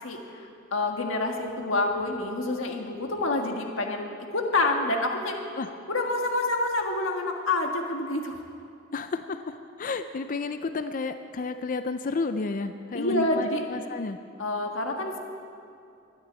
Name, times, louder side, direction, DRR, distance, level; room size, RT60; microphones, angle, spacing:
voice 1, 0.0-5.4 5.9-8.4 12.9-13.6 14.4-15.2, left 2 dB, 75° left, 2 dB, 1.6 m, -28 dB
voice 2, 8.9-14.2, left 3 dB, 40° left, 9 dB, 0.4 m, -31 dB
12.5 x 9.7 x 8.7 m, 2.5 s
head